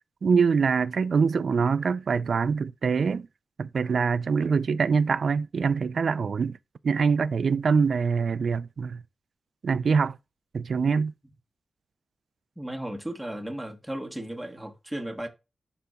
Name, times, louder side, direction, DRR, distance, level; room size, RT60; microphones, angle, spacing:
voice 1, 0.2-3.3 3.6-6.6 6.8-9.0 9.6-10.2 10.5-11.1, right 5 dB, 60° right, 0.3 m, -24 dB
voice 2, 12.6-15.3, right 1 dB, 5° right, 1.1 m, -35 dB
11.5 x 4.0 x 2.3 m
wide cardioid pair, 120°, 0 cm